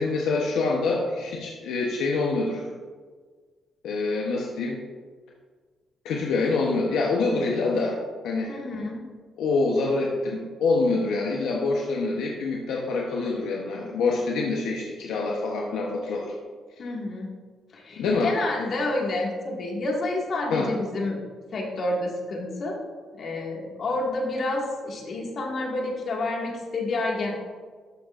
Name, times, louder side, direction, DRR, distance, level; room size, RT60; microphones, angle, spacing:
voice 1, 0.0-2.7 3.8-4.8 6.0-8.0 8.2-8.5 9.4-16.3 18.0-18.7 20.5-20.7, left 3 dB, 85° left, -2 dB, 0.9 m, -26 dB
voice 2, 8.5-9.1 16.8-17.3 17.7-21.2 21.5-22.8 23.2-27.3, left 2 dB, 55° left, -1 dB, 1.9 m, -29 dB
12.0 x 6.4 x 2.5 m, 1.5 s
cardioid pair, 90°, 0 cm